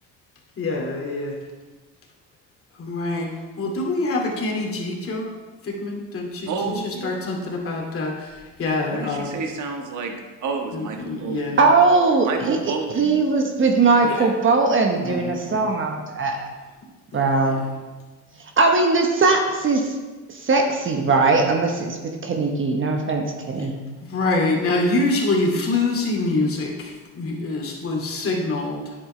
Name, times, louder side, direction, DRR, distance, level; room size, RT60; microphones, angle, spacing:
voice 1, 0.6-1.4 2.8-5.3 5.6-9.4 10.7-11.7 14.0-14.3 15.0-15.7 17.1-17.6 24.1-28.9, left 2 dB, 40° left, -2 dB, 2.4 m, -25 dB
voice 2, 6.5-7.2 8.9-10.1 10.4-11.6 12.2-13.2, right 4 dB, 55° right, 3 dB, 1.5 m, -30 dB
voice 3, 11.6-16.5 17.1-17.7 18.4-20.0 20.3-23.8, right 3 dB, 35° right, 3 dB, 1.1 m, -20 dB
10.0 x 7.8 x 3.3 m, 1.3 s
supercardioid pair, 90°, 36 cm